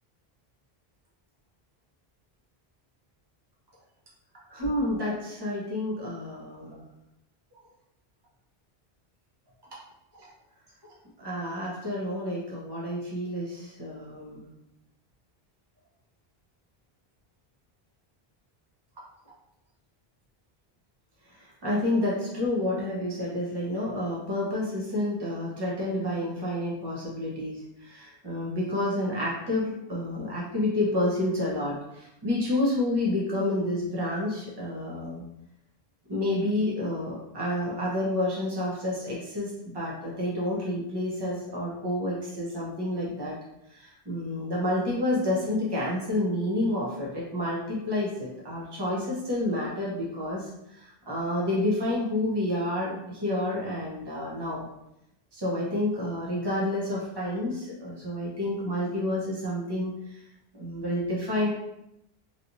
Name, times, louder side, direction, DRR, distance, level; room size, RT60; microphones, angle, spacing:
voice 1, 4.5-6.8 10.2-10.3 11.2-14.5 21.6-35.2 36.1-43.4 43.7-50.5 50.8-54.7 55.3-59.9 60.5-61.5, left 1 dB, 25° right, -5 dB, 0.9 m, -29 dB
3.2 x 2.9 x 2.6 m, 0.83 s
omnidirectional pair, 1.0 m